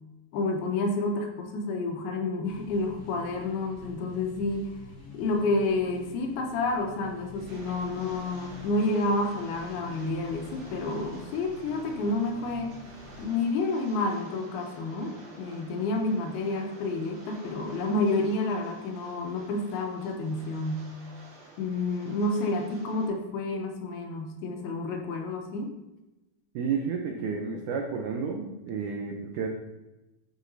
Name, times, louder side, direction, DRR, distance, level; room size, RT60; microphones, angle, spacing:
voice 1, 0.3-4.7 5.1-12.7 13.2-20.9 21.6-25.7, left 2 dB, 85° left, 2 dB, 2.9 m, -29 dB
sound 1, 2.4-13.2, left 3 dB, 15° left, 0.8 m, -47 dB
Rain, 7.3-23.1, right 2 dB, 70° right, 4.0 m, -50 dB
voice 2, 26.5-29.5, right 5 dB, 85° right, 3 dB, 1.7 m, -31 dB
12.0 x 5.2 x 2.6 m, 0.99 s
omnidirectional pair, 4.4 m